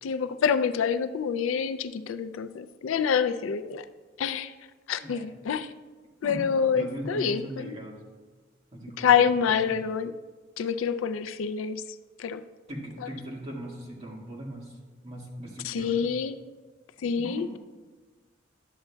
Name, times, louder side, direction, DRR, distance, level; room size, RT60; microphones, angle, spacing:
voice 1, 0.0-3.8 4.2-4.5 4.9-5.7 6.2-7.8 9.0-10.1 10.6-11.8 12.2-12.4 15.6-16.4 17.0-17.6, left 7 dB, 80° left, 12 dB, 0.4 m, -27 dB
voice 2, 6.7-8.0 8.7-9.8 12.7-14.8 15.0-16.0 17.1-17.5, equal, 35° right, -3 dB, 1.7 m, -39 dB
11.5 x 7.9 x 2.2 m, 1.4 s
head